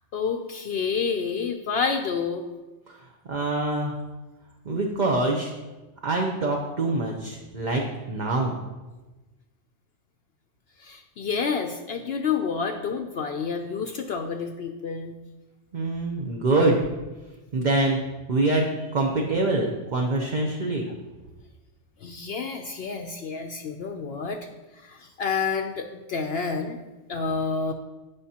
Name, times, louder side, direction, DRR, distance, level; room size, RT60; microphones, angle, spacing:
voice 1, 0.1-2.4 10.8-15.1 20.9-21.0 22.0-24.4 24.8-26.8 27.1-27.7, left 5 dB, 60° left, 5 dB, 0.8 m, -29 dB
voice 2, 3.3-3.9 4.7-5.5 6.0-7.8 8.1-8.5 15.7-16.8 17.5-18.0 18.3-18.7 18.9-20.9, right 2 dB, 40° right, 0 dB, 0.8 m, -24 dB
15.0 x 5.2 x 2.9 m, 1.1 s
omnidirectional pair, 1.3 m